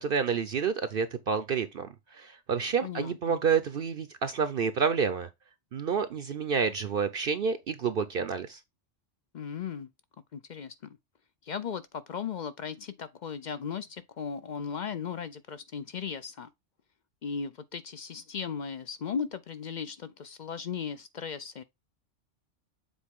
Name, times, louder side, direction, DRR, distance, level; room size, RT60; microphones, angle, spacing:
voice 1, 0.0-5.3 5.7-8.6, right 6 dB, 55° right, 0.7 m, -29 dB
voice 2, 2.8-3.4 9.3-9.9 10.3-11.0 11.4-16.5 17.2-21.6, left 6 dB, 55° left, 0.5 m, -37 dB
7.2 x 4.1 x 3.6 m
omnidirectional pair, 1.2 m